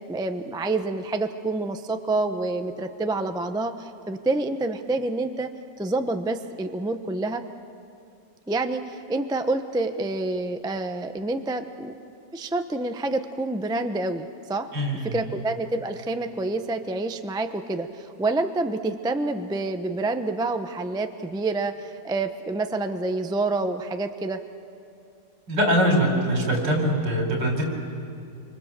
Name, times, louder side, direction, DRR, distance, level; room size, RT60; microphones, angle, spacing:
voice 1, 0.1-5.5 5.8-7.4 8.5-11.9 12.3-14.7 15.0-24.4, right 2 dB, 5° right, 7 dB, 0.5 m, -28 dB
voice 2, 14.7-15.2 25.5-27.7, equal, 75° right, 1 dB, 5.0 m, -23 dB
28.0 x 24.5 x 7.5 m, 2.6 s
omnidirectional pair, 1.9 m